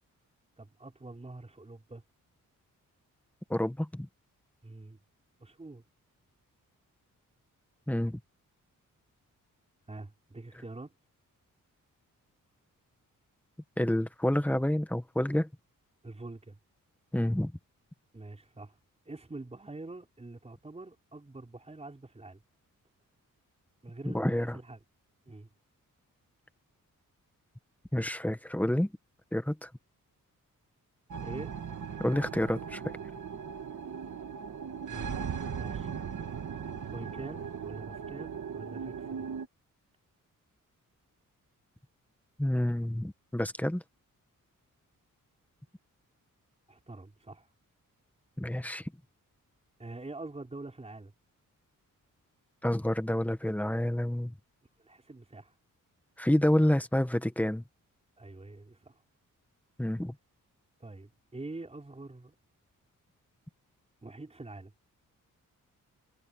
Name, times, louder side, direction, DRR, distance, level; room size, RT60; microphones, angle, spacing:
voice 1, 0.6-2.0 4.6-5.0 5.4-5.8 9.9-10.9 16.0-16.6 18.1-18.8 19.1-22.4 23.8-24.8 25.3-25.5 31.2-31.6 34.9-35.2 35.6-35.9 36.9-39.3 46.7-47.5 49.8-51.1 54.8-55.5 58.2-59.0 60.8-62.4 64.0-64.7, right 2 dB, 20° right, 4.2 m, -45 dB
voice 2, 3.5-4.1 7.9-8.2 13.8-15.5 17.1-17.5 24.1-24.6 27.9-28.9 29.3-29.7 32.0-32.8 42.4-43.8 48.4-48.9 52.6-54.3 56.2-57.6 59.8-60.1, left 1 dB, 5° left, 1.7 m, -28 dB
sound 1, 31.1-39.5, right 7 dB, 65° right, 2.5 m, -38 dB
cardioid pair, 100°, 32 cm